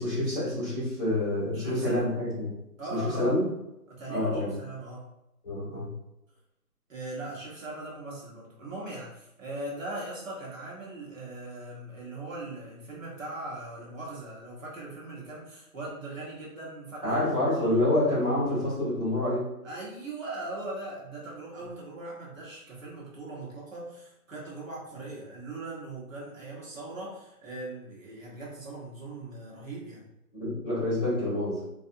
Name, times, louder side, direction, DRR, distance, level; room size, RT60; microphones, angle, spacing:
voice 1, 0.0-2.5 2.9-3.4 4.1-4.5 5.4-5.9 17.0-19.4 30.3-31.6, left 1 dB, 5° left, -15 dB, 1.2 m, -27 dB
voice 2, 1.5-2.0 2.8-3.3 3.9-5.1 6.9-17.2 17.5-17.8 19.6-30.0, right 2 dB, 55° right, -5 dB, 1.4 m, -40 dB
3.2 x 2.7 x 2.6 m, 0.85 s
hypercardioid pair, 170°, 47 cm